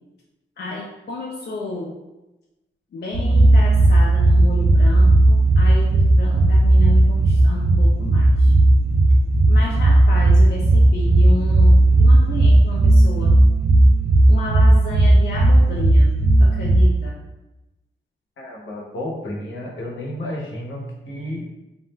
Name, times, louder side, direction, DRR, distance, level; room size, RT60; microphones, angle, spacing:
voice 1, 0.6-2.0 2.9-8.5 9.5-13.4 14.3-16.1 16.4-17.2, left 2 dB, 55° left, -3 dB, 0.5 m, -31 dB
Freak Ambience, 3.1-16.8, right 2 dB, 55° right, 0.5 m, -14 dB
voice 2, 18.4-21.5, left 1 dB, 75° left, -2 dB, 0.8 m, -31 dB
2.4 x 2.1 x 3.1 m, 1.0 s
cardioid pair, 75°, 20 cm